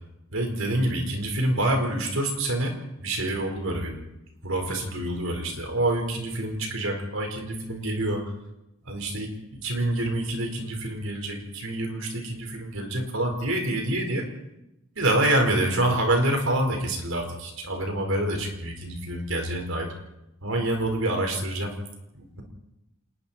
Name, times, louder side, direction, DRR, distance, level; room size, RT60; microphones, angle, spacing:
voice 1, 0.3-2.7 3.0-4.0 4.4-8.2 8.9-14.3 15.0-19.9 20.4-21.7 22.1-22.4, right 1 dB, 80° right, 3 dB, 5.2 m, -27 dB
27.5 x 20.5 x 4.6 m, 0.89 s
head